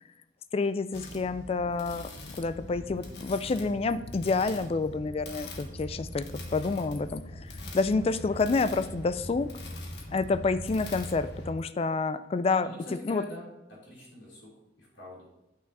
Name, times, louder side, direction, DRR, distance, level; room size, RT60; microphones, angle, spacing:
voice 1, 0.5-2.1 2.4-6.3 6.5-9.5 10.1-12.7 13.1-13.2, left 3 dB, 30° left, 13 dB, 0.3 m, -28 dB
sound 1, 0.9-11.5, left 1 dB, 60° left, 1.3 m, -42 dB
voice 2, 10.1-10.5 12.6-14.5 14.8-15.3, left 1 dB, 90° left, -6 dB, 3.3 m, -45 dB
8.5 x 5.9 x 4.1 m, 0.93 s
head